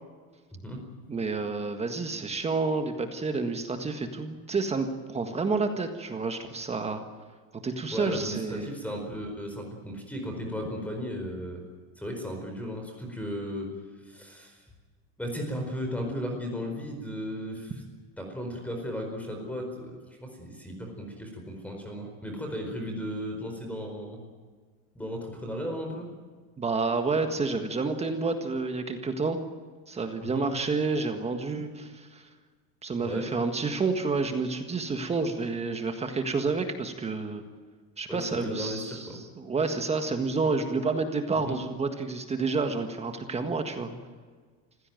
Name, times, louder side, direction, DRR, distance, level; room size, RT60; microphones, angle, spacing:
voice 1, 1.1-7.0 7.6-8.7 26.6-29.4 29.9-32.3 32.8-37.4 38.0-43.9, right 4 dB, 20° right, 6 dB, 1.7 m, -29 dB
voice 2, 7.9-11.6 12.0-13.7 14.0-14.6 15.2-17.8 18.2-24.2 24.9-26.1 30.2-30.5 33.0-33.3 38.1-39.2 41.4-41.6, equal, 5° left, 3 dB, 4.6 m, -35 dB
25.5 x 16.0 x 9.2 m, 1.5 s
cardioid pair, 150°, 36 cm